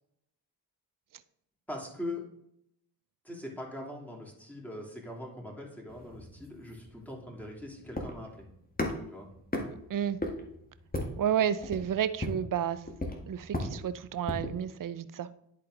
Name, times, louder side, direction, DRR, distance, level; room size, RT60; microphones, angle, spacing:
voice 1, 1.7-2.2 3.2-8.5 9.1-9.3, left 1 dB, 5° left, -2 dB, 3.2 m, -41 dB
sound 1, 5.9-14.6, left 1 dB, 20° left, 1.7 m, -37 dB
voice 2, 11.2-12.8 13.3-15.3, right 9 dB, 45° right, 13 dB, 0.6 m, -31 dB
10.5 x 4.1 x 3.9 m, 0.75 s
supercardioid pair, 45°, 44 cm